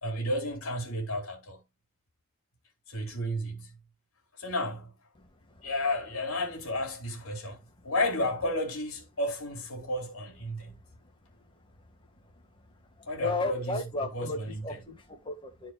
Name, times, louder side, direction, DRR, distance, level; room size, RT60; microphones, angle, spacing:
voice 1, 0.0-1.6 2.9-3.7 4.4-4.9 5.6-7.6 7.8-10.8 13.1-13.8 14.1-14.8, left 1 dB, 75° left, 3.0 m, -32 dB
voice 2, 13.0-15.7, left 2 dB, 25° left, 1.8 m, -34 dB
13.0 x 4.7 x 2.3 m
head